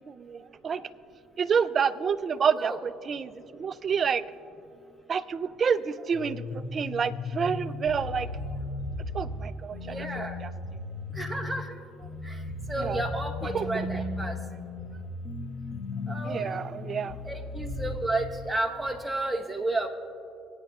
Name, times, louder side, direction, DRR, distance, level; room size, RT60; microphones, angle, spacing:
voice 1, 0.1-0.9 1.4-2.7 3.1-4.2 5.1-8.3 9.1-10.3 12.8-13.0 13.5-13.7 16.2-17.2, right 6 dB, 40° right, 14 dB, 0.4 m, -28 dB
voice 2, 2.5-2.8 9.9-10.4 11.2-11.8 12.2-12.4 12.7-14.3 16.1-16.6 17.2-19.9, right 2 dB, 10° right, 2 dB, 1.1 m, -32 dB
sound 1, 6.1-18.0, left 2 dB, 45° left, 1.7 m, -36 dB
24.0 x 9.0 x 2.4 m, 2.5 s
supercardioid pair, 90°, 0 cm